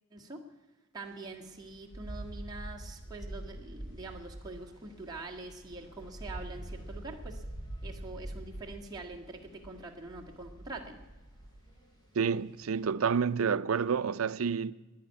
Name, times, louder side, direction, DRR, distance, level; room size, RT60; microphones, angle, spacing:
voice 1, 0.1-0.5 0.9-7.4 7.8-11.0, right 3 dB, 20° right, 1.7 m, -44 dB
sound 1, 1.0-12.8, right 1 dB, 20° left, 3.1 m, -45 dB
voice 2, 12.1-14.7, right 6 dB, 80° right, 0.5 m, -29 dB
11.0 x 10.0 x 9.8 m
head